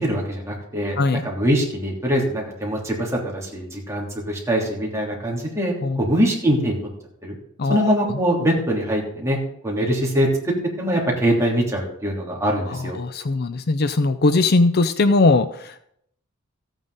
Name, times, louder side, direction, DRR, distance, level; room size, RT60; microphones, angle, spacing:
voice 1, 0.0-6.8 7.2-7.4 7.7-9.4 9.6-13.0, equal, 15° right, -2 dB, 3.2 m, -23 dB
voice 2, 7.6-8.2 12.7-15.8, left 3 dB, 50° left, 11 dB, 0.6 m, -20 dB
14.5 x 9.0 x 4.1 m, 0.71 s
head